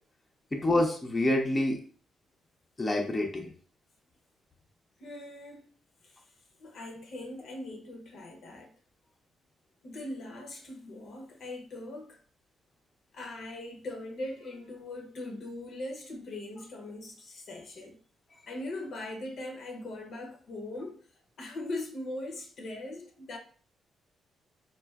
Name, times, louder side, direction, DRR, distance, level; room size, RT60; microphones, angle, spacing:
voice 1, 0.5-1.8 2.8-3.5, left 1 dB, 25° left, 0.7 m, -27 dB
voice 2, 5.0-5.7 6.0-6.3 6.6-8.7 9.8-12.2 13.1-18.0 18.5-21.0 21.4-23.4, left 2 dB, 65° left, 0.8 m, -40 dB
3.3 x 2.4 x 2.3 m
supercardioid pair, 65°, 0 cm